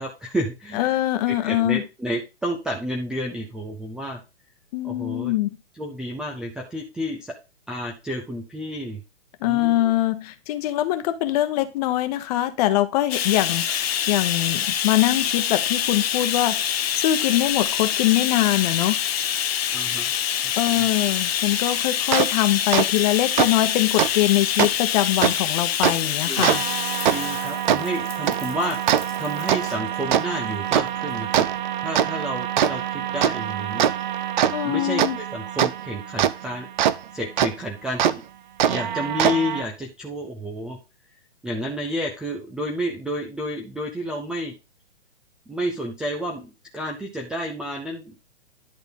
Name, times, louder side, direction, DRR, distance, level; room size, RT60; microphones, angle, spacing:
voice 1, 0.0-1.0 1.3-4.2 4.8-5.3 5.7-7.3 7.7-9.0 9.4-9.9 19.7-20.1 20.7-20.9 26.1-26.5 27.1-31.4 31.8-33.9 34.6-36.7 37.1-38.2 38.7-40.8 41.4-44.5 45.5-48.2, equal, ahead, 1 dB, 0.4 m, -30 dB
voice 2, 0.7-1.8 4.7-5.5 9.4-16.6 16.9-19.0 20.6-26.6 34.5-35.2, left 14 dB, 35° left, 10 dB, 1.0 m, -23 dB
Bathtub (filling or washing), 13.1-29.8 30.7-30.8 31.2-31.3, left 9 dB, 60° left, 0.8 m, -26 dB
sound 1, 22.1-22.3 22.7-22.8 23.4-23.5 24.0-24.1 24.6-24.7 25.2-25.3 25.8-25.9 26.4-36.9 37.4-37.5 38.0-38.1 38.6-39.6, right 10 dB, 45° right, 0.6 m, -23 dB
10.5 x 3.9 x 5.2 m, 0.28 s
figure-of-eight pair, 125°, 35 cm